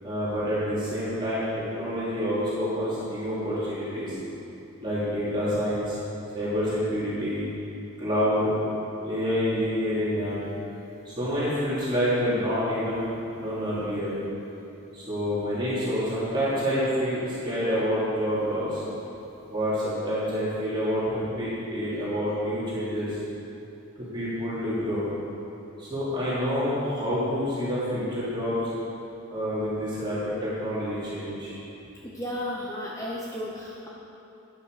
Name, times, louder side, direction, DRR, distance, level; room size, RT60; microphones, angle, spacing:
voice 1, 0.0-4.2 4.8-6.0 6.3-7.4 8.0-8.5 9.0-10.5 11.0-13.1 13.4-14.1 14.9-18.8 19.5-23.2 24.1-25.0 25.8-28.6 29.3-31.5, equal, 20° right, -11 dB, 3.0 m, -27 dB
voice 2, 32.0-33.9, left 1 dB, 15° left, -4 dB, 0.8 m, -34 dB
12.0 x 9.0 x 4.9 m, 2.9 s
head